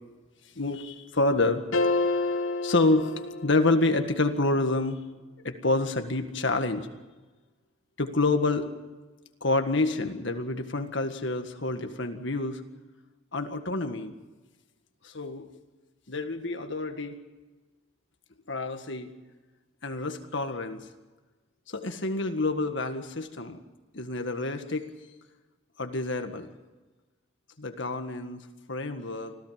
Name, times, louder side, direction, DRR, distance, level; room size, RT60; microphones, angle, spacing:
voice 1, 0.6-1.6 2.6-5.0 5.4-6.9 8.0-8.7 9.4-12.6 13.3-14.1 15.0-15.5 16.1-17.2 18.5-19.1 19.8-20.9 21.7-23.6 23.9-24.9 25.8-26.5 27.6-28.4 28.7-29.3, left 2 dB, 60° left, 7 dB, 1.8 m, -28 dB
sound 1, 1.7-4.0, left 3 dB, 90° left, 1.7 m, -28 dB
26.0 x 16.5 x 7.5 m, 1.2 s
head